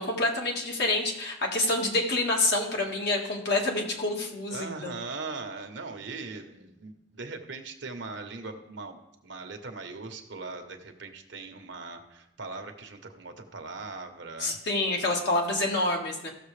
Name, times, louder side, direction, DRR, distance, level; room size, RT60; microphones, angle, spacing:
voice 1, 0.0-5.0 14.4-16.3, left 2 dB, 60° left, 0 dB, 1.7 m, -27 dB
voice 2, 4.5-14.6, right 3 dB, 65° right, 6 dB, 1.0 m, -40 dB
15.0 x 6.7 x 3.3 m, 0.85 s
head